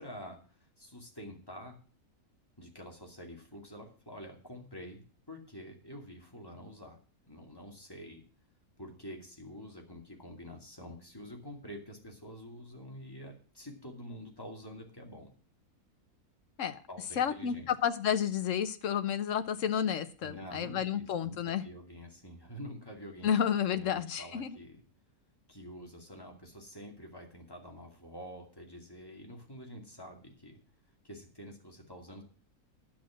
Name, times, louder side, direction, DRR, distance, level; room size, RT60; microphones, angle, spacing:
voice 1, 0.0-1.7 2.6-5.0 5.3-7.0 7.3-8.2 8.8-15.3 16.9-17.7 20.2-23.3 23.7-24.8 25.5-30.6 31.0-32.2, equal, 15° left, 1 dB, 2.4 m, -47 dB
voice 2, 17.2-21.6 23.2-24.6, left 8 dB, 60° left, 11 dB, 1.2 m, -31 dB
10.0 x 7.2 x 7.5 m, 0.40 s
omnidirectional pair, 1.6 m